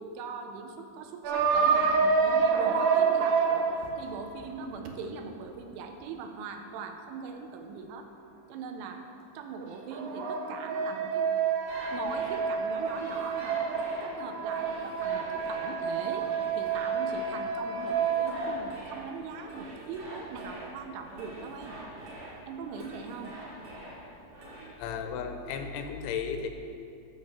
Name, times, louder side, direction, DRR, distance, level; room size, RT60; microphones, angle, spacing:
voice 1, 0.0-3.7 4.0-8.1 8.5-9.0 9.4-11.3 11.9-16.3 16.6-21.8 22.5-23.4, right 5 dB, 90° right, 5 dB, 3.5 m, -41 dB
sound 1, 1.2-4.9 9.6-18.8, right 5 dB, 70° right, 3.0 m, -28 dB
sound 2, 11.7-24.7, right 1 dB, 45° right, 4.0 m, -45 dB
voice 2, 24.8-26.5, left 6 dB, 85° left, 6 dB, 3.2 m, -34 dB
13.5 x 8.6 x 7.1 m, 2.6 s
omnidirectional pair, 5.5 m